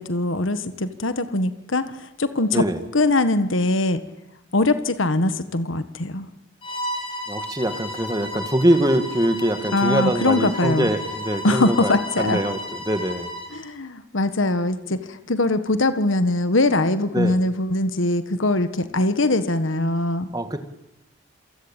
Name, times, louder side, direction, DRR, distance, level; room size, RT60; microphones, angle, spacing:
voice 1, 0.0-2.7 2.9-4.0 4.5-6.3 9.7-10.9 11.4-12.4 13.5-20.3, left 2 dB, 70° left, 11 dB, 1.5 m, -22 dB
Bowed string instrument, 6.6-13.6, left 1 dB, 25° left, 6.5 m, -33 dB
voice 2, 7.3-12.6 12.9-13.3 17.1-17.4 20.3-20.6, right 1 dB, 20° right, 9 dB, 2.0 m, -23 dB
28.0 x 23.5 x 9.0 m, 0.89 s
head